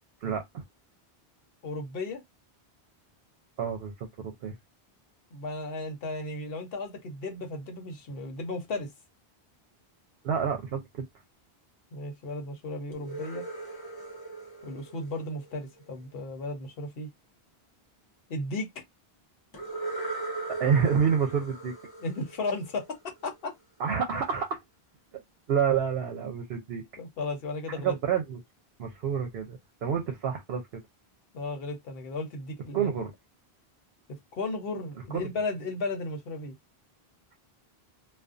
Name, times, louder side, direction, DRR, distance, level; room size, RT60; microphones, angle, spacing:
voice 1, 0.2-0.6 3.6-4.6 10.2-11.1 20.5-21.7 23.8-24.6 25.1-25.2 25.5-26.8 27.8-28.4 28.8-30.8 32.7-33.1 35.1-35.3, right 7 dB, 80° right, 0.9 m, -28 dB
voice 2, 1.6-2.2 5.3-8.9 11.9-13.4 14.6-17.1 18.3-18.8 22.0-23.5 27.0-27.9 31.3-32.9 34.3-36.5, left 2 dB, 65° left, 0.9 m, -35 dB
sound 1, 12.9-15.9 19.5-23.3, right 3 dB, 25° left, 0.6 m, -39 dB
2.5 x 2.3 x 2.4 m
omnidirectional pair, 1.0 m